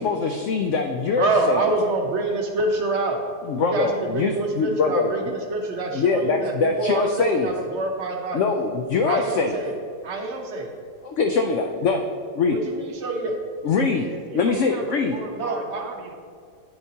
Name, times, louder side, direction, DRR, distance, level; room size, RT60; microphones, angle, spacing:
voice 1, 0.0-1.6 3.5-5.3 5.9-7.5 8.3-9.6 11.0-12.1 12.3-12.6 13.6-14.1 14.3-15.2, left 4 dB, 80° left, 4 dB, 0.6 m, -23 dB
voice 2, 1.1-3.2 3.5-8.4 9.0-9.8 10.0-10.7 12.5-13.3 15.3-15.8, right 2 dB, 50° right, 2 dB, 0.9 m, -26 dB
voice 3, 14.1-16.1, right 4 dB, 80° right, 3 dB, 1.4 m, -38 dB
8.6 x 7.9 x 2.8 m, 2.2 s
omnidirectional pair, 1.8 m